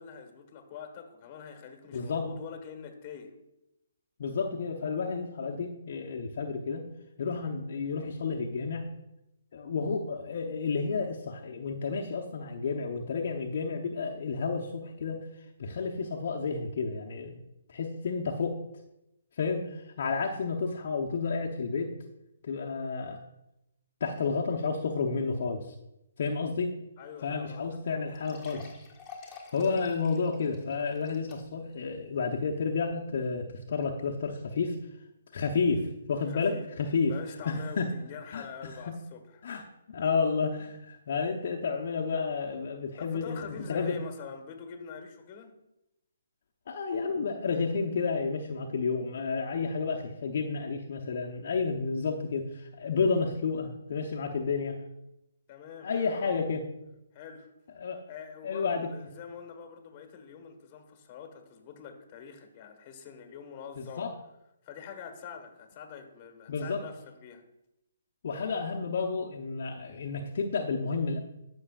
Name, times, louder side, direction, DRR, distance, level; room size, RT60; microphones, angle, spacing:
voice 1, 0.0-3.3 27.0-28.0 36.3-36.7 37.1-39.4 43.0-45.5 55.5-56.4 57.1-57.5 58.1-64.1 64.6-67.4, left 7 dB, 30° left, 1.4 m, -45 dB
voice 2, 1.9-2.3 4.2-6.9 7.2-8.9 9.5-15.2 15.6-17.4 17.7-18.6 19.4-21.9 22.4-23.2 24.0-25.7 26.2-26.7 27.2-28.7 29.5-34.8 35.3-37.1 37.4-37.9 38.3-39.0 39.4-44.0 46.7-54.7 55.8-56.6 57.8-58.0 58.4-58.9 63.8-64.1 66.5-66.8 68.2-71.2, left 4 dB, 55° left, 0.8 m, -31 dB
Water + Glassful, 27.3-27.4 27.6-27.7 28.1-31.7 32.2-32.3 32.9-33.0, left 5 dB, 15° left, 1.6 m, -50 dB
13.5 x 6.2 x 2.4 m
hypercardioid pair, 145°, 0 cm